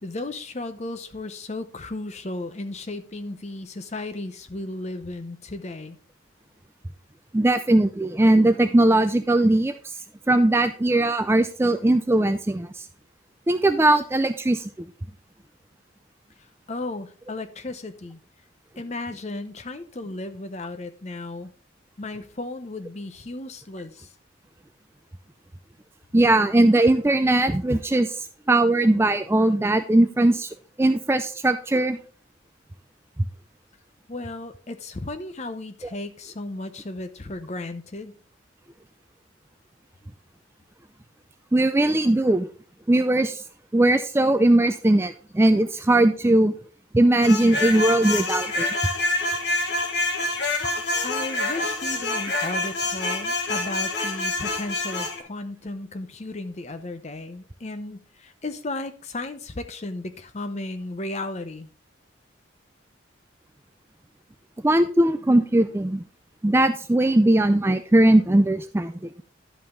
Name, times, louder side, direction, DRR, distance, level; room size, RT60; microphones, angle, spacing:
voice 1, 0.0-6.0 16.7-18.2 18.8-21.5 22.0-24.1 34.1-38.2 51.0-61.7, left 2 dB, 35° left, 10 dB, 0.7 m, -34 dB
voice 2, 7.3-9.7 10.3-12.9 13.5-14.7 26.1-30.5 30.8-32.0 41.5-42.5 42.9-43.4 43.7-46.5 46.9-48.7 64.6-66.0 66.4-68.9, right 1 dB, 10° right, 10 dB, 0.3 m, -19 dB
sound 1, 47.2-55.2, left 2 dB, 55° left, 1.4 m, -27 dB
11.0 x 5.5 x 3.7 m, 0.40 s
head